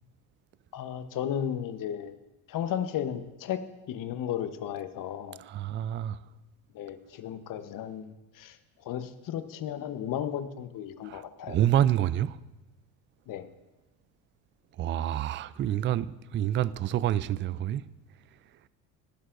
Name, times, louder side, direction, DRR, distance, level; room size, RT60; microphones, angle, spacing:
voice 1, 0.7-2.1 2.5-5.4 6.7-8.6 8.8-11.6 13.3-13.5, left 9 dB, 50° left, 1.1 m, -34 dB
voice 2, 5.4-6.3 11.0-12.4 14.7-17.9 18.3-18.7, right 11 dB, 30° right, 0.4 m, -28 dB
18.0 x 11.0 x 2.6 m
hypercardioid pair, 75°, 42 cm